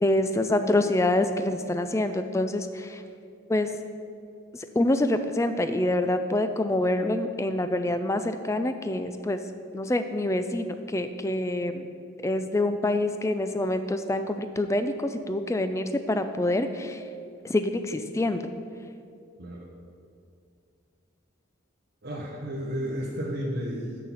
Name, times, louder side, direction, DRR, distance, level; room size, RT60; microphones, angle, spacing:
voice 1, 0.0-3.0 3.5-3.7 4.5-9.4 9.7-11.8 12.2-17.0 17.5-18.4, left 1 dB, 15° left, 9 dB, 0.3 m, -26 dB
voice 2, 22.0-24.0, equal, 50° right, -4 dB, 0.9 m, -32 dB
6.4 x 5.8 x 7.0 m, 2.4 s
head